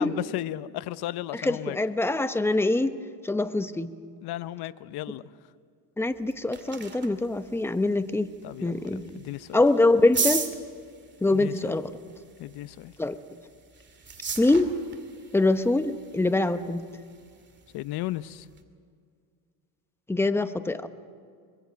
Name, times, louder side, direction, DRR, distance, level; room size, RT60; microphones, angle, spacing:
voice 1, 0.0-1.8 4.2-5.2 8.4-9.6 11.3-11.8 12.4-12.9 17.7-18.5, left 15 dB, 60° left, 15 dB, 0.8 m, -35 dB
voice 2, 1.4-3.0 3.2-3.9 6.0-8.3 8.6-9.2 9.5-10.5 11.2-11.8 13.0-13.1 14.4-14.7 15.3-16.8 20.1-20.9, left 2 dB, 5° left, 10 dB, 0.9 m, -24 dB
sound 1, 6.1-18.6, right 5 dB, 25° right, 2.4 m, -38 dB
25.5 x 22.0 x 5.2 m, 2.2 s
cardioid pair, 110°, 44 cm